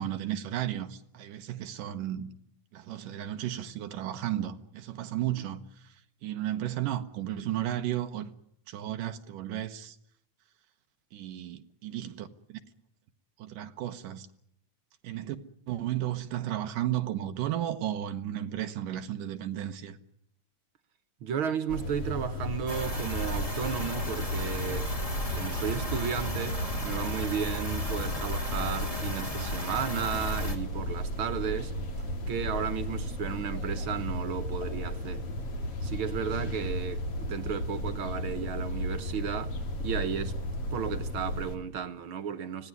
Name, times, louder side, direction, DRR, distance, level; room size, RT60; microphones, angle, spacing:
voice 1, 0.0-2.3 2.7-8.3 8.7-10.0 11.1-12.6 13.4-14.3 15.0-15.4 15.7-20.0, right 12 dB, 85° right, 2.8 m, -34 dB
voice 2, 21.2-24.9 25.3-31.7 32.3-35.3 35.8-40.4 40.7-42.7, right 7 dB, 65° right, 1.3 m, -34 dB
sound 1, 21.7-41.6, left 1 dB, 45° left, 3.4 m, -34 dB
sound 2, 22.7-30.6, left 1 dB, 10° left, 2.7 m, -36 dB
25.0 x 17.5 x 9.6 m
omnidirectional pair, 3.7 m